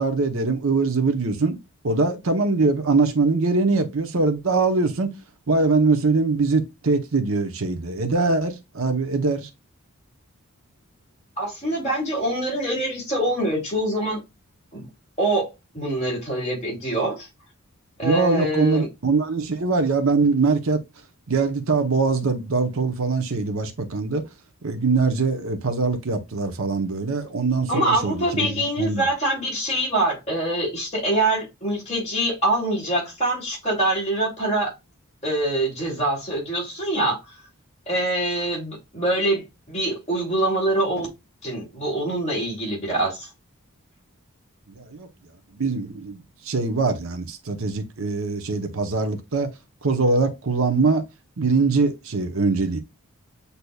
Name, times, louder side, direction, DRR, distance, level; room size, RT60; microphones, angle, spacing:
voice 1, 0.0-1.6 1.8-5.1 5.5-9.5 18.0-20.8 21.3-24.2 24.6-29.1 44.7-45.1 45.5-49.5 49.8-51.0 51.4-52.8, right 3 dB, 65° right, 0.8 m, -22 dB
voice 2, 11.4-14.2 14.7-14.9 15.2-15.5 15.7-17.3 18.0-18.9 27.7-34.7 35.2-37.2 37.9-41.1 41.4-43.3, right 1 dB, 30° left, 2.6 m, -24 dB
8.0 x 2.8 x 2.3 m
head